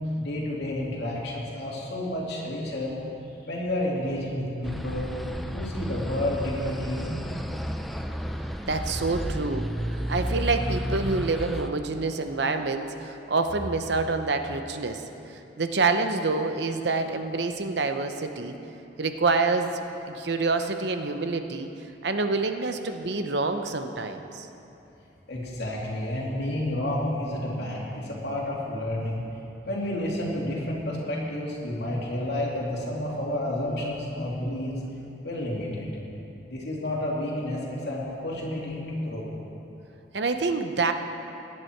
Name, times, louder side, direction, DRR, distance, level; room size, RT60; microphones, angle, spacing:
voice 1, 0.2-3.0 3.4-5.1 5.5-7.3 25.3-29.2 29.7-34.8 35.2-35.9 36.5-39.2, left 1 dB, 65° left, -4 dB, 2.7 m, -30 dB
sound 1, 4.6-11.7, equal, ahead, 0.4 m, -32 dB
voice 2, 8.7-9.7 9.9-15.0 15.6-18.6 19.0-19.8 20.1-21.7 22.0-24.5 40.1-40.9, right 3 dB, 65° right, 7 dB, 0.8 m, -27 dB
17.0 x 10.5 x 4.6 m, 2.9 s
head